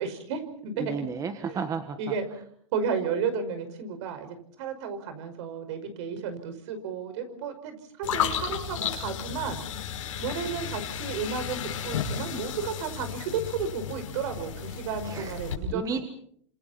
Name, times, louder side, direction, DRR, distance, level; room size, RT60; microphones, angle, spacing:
voice 1, 0.0-0.8 1.5-1.6 2.0-2.3 2.7-9.6 10.2-16.0, right 6 dB, 60° right, 9 dB, 5.5 m, -33 dB
voice 2, 0.8-2.0 15.0-15.4 15.7-16.0, right 6 dB, 20° right, 8 dB, 1.6 m, -32 dB
sound 1, 8.0-15.5, left 8 dB, 80° left, 5.6 m, -33 dB
29.5 x 26.5 x 4.3 m, 0.62 s
hypercardioid pair, 135°, 17 cm